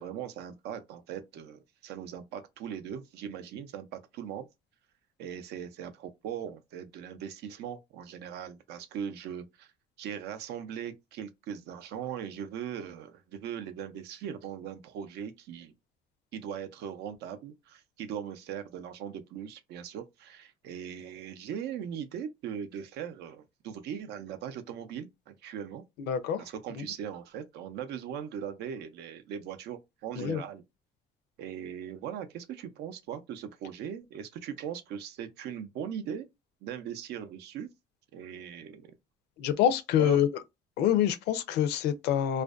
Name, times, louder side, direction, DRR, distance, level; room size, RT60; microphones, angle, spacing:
voice 1, 0.0-4.5 5.2-9.7 10.0-15.7 16.3-25.8 26.4-30.6 31.4-36.3 36.6-37.7 38.1-38.9 40.0-40.2, right 8 dB, 75° right, 0.5 m, -39 dB
voice 2, 26.0-26.4 26.8-26.9 30.2-30.4 39.4-40.3 40.8-42.4, left 10 dB, 80° left, 0.5 m, -26 dB
2.5 x 2.1 x 2.3 m
cardioid pair, 110°, 17 cm